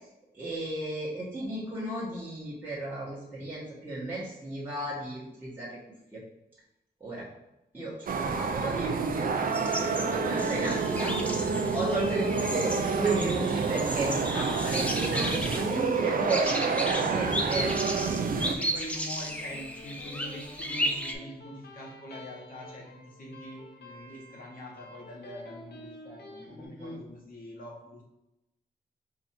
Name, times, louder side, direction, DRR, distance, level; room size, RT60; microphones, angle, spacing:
voice 1, 0.3-5.8 6.1-6.2 7.0-7.2 7.7-11.1 11.7-17.7 26.5-27.0, right 2 dB, 10° right, -9 dB, 1.1 m, -34 dB
sound 1, 8.1-18.5, right 5 dB, 55° right, 0.4 m, -28 dB
sound 2, 9.5-21.1, equal, 5° left, 0.4 m, -35 dB
voice 2, 9.6-10.8 18.4-28.0, left 1 dB, 55° left, -2 dB, 1.2 m, -44 dB
Electric guitar, 19.3-26.5, left 1 dB, 75° left, 0.9 m, -50 dB
4.7 x 2.6 x 4.2 m, 0.91 s
wide cardioid pair, 145°, 17 cm